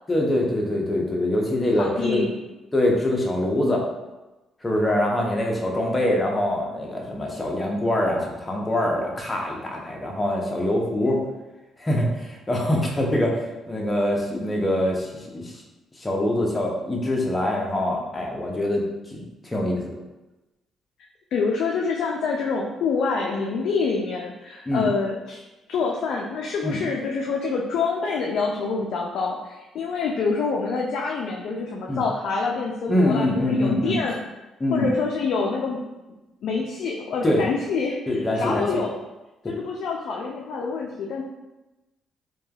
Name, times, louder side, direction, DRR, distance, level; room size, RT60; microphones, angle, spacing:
voice 1, 0.1-2.2 2.7-3.8 4.6-11.2 11.8-13.4 13.7-15.5 16.0-20.0 24.7-24.9 26.6-26.8 31.9-32.0 32.9-34.0 34.6-34.9 37.2-37.4 38.1-38.7, left 1 dB, 20° left, -1 dB, 0.6 m, -24 dB
voice 2, 1.8-2.4 21.3-25.4 25.7-34.2 34.7-35.8 36.4-39.0 39.5-41.2, left 4 dB, 75° left, -1 dB, 0.3 m, -26 dB
3.1 x 2.2 x 2.3 m, 1.0 s
cardioid pair, 90°, 0 cm